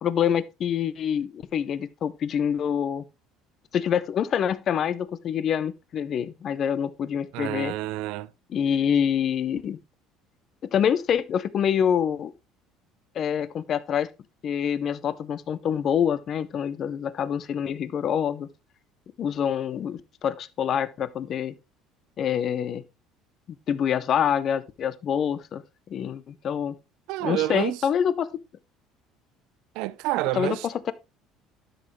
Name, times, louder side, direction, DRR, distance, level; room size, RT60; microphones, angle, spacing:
voice 1, 0.0-3.0 3.7-7.7 8.5-9.8 10.7-12.3 13.1-14.1 14.4-18.5 19.2-21.6 22.2-22.8 23.7-25.6 25.9-26.8 27.2-28.3 30.4-30.9, left 8 dB, 30° left, 0.5 m, -26 dB
voice 2, 7.3-8.3 27.1-27.8 29.8-30.7, right 16 dB, 65° right, 0.5 m, -28 dB
12.0 x 6.3 x 3.1 m
cardioid pair, 175°, 0 cm